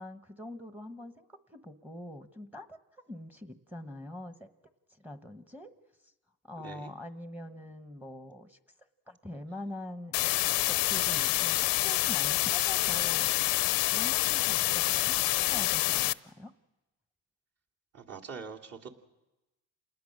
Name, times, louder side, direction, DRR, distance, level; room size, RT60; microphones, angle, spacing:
voice 1, 0.0-2.8 3.1-4.5 5.0-5.7 6.4-8.6 9.1-10.3 10.7-13.3 13.9-15.1 15.5-16.5, left 1 dB, 5° right, 9 dB, 1.2 m, -44 dB
voice 2, 6.6-6.9 17.9-18.9, right 6 dB, 45° right, 0 dB, 2.8 m, -43 dB
sound 1, 10.1-16.1, left 20 dB, 80° left, 0.7 m, -27 dB
29.0 x 19.5 x 6.5 m, 1.0 s
cardioid pair, 115°, 35 cm